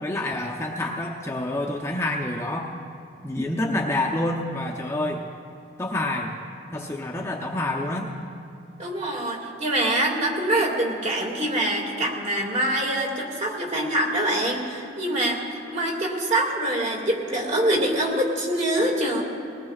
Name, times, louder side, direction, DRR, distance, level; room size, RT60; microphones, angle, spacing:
voice 1, 0.0-2.7 3.2-5.2 5.8-6.3 6.7-8.1, left 1 dB, 15° left, -1 dB, 0.7 m, -27 dB
voice 2, 8.8-19.2, right 1 dB, 35° right, 0 dB, 2.1 m, -25 dB
21.0 x 18.5 x 2.4 m, 2.5 s
head